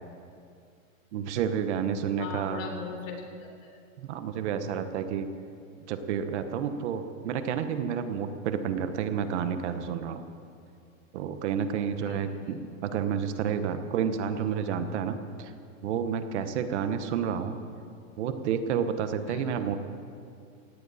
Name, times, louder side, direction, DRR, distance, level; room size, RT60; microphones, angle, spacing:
voice 1, 1.1-2.7 4.0-5.3 5.9-10.2 11.1-15.5 15.8-17.6 18.2-19.8, right 7 dB, 55° right, 9 dB, 1.2 m, -30 dB
voice 2, 2.2-3.8 12.0-12.6 19.3-19.5, left 5 dB, 70° left, 2 dB, 3.6 m, -40 dB
17.5 x 17.0 x 4.2 m, 2.4 s
supercardioid pair, 165°, 41 cm